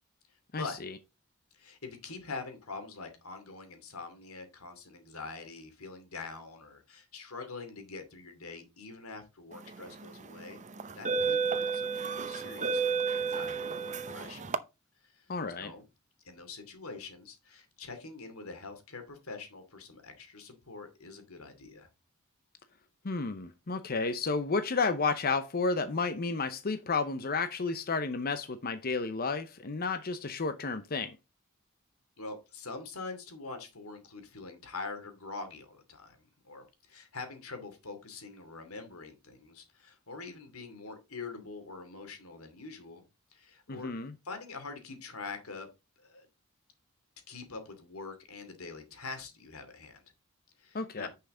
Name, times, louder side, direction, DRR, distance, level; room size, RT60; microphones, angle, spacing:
voice 1, 0.5-0.9 15.3-15.7 23.0-31.2 43.7-44.1 50.7-51.1, left 4 dB, 45° left, 0.7 m, -32 dB
voice 2, 1.5-10.6 10.9-14.4 15.0-15.9 16.2-21.9 32.2-43.0 43.3-43.9 44.2-45.7 46.0-46.3 47.3-50.0 50.6-51.1, left 4 dB, 85° left, 2.7 m, -44 dB
sound 1, 9.8-10.0 10.8-14.6, right 5 dB, 35° right, 0.7 m, -31 dB
10.0 x 5.7 x 3.8 m
head